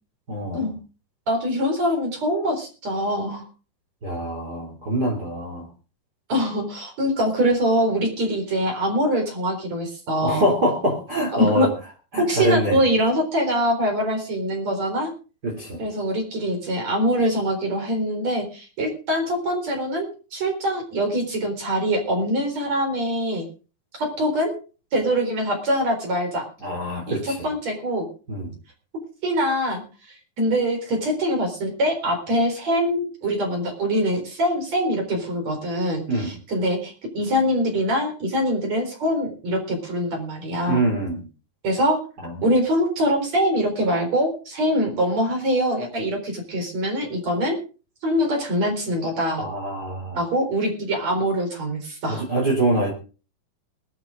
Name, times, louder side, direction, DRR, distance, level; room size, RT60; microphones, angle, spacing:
voice 1, 0.3-0.7 4.0-5.7 10.2-11.7 12.1-12.8 15.4-15.8 26.6-27.5 28.3-28.5 36.1-36.3 40.7-41.3 42.2-42.4 49.4-50.2 52.1-52.9, right 1 dB, 30° right, 2 dB, 3.3 m, -24 dB
voice 2, 1.3-3.4 6.3-10.4 11.3-11.7 12.3-15.1 15.8-23.5 24.0-24.5 24.9-26.5 27.1-28.1 29.2-40.8 41.6-42.0 42.4-47.6 48.0-49.4 50.1-52.2, equal, 50° right, 4 dB, 5.1 m, -23 dB
20.5 x 11.5 x 3.8 m, 0.36 s
omnidirectional pair, 4.1 m